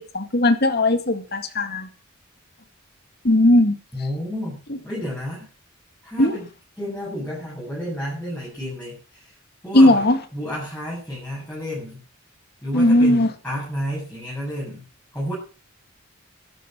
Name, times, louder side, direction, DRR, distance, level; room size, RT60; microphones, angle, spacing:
voice 1, 0.0-1.9 3.2-3.7 4.7-4.8 6.2-6.3 9.7-10.2 12.7-13.3, left 1 dB, 50° left, 2.1 m, -17 dB
voice 2, 3.9-4.6 4.8-5.5 6.0-6.5 6.8-9.2 9.6-10.1 10.3-12.0 12.6-14.8 15.1-15.3, equal, 5° left, 7.8 m, -31 dB
12.0 x 12.0 x 6.2 m
head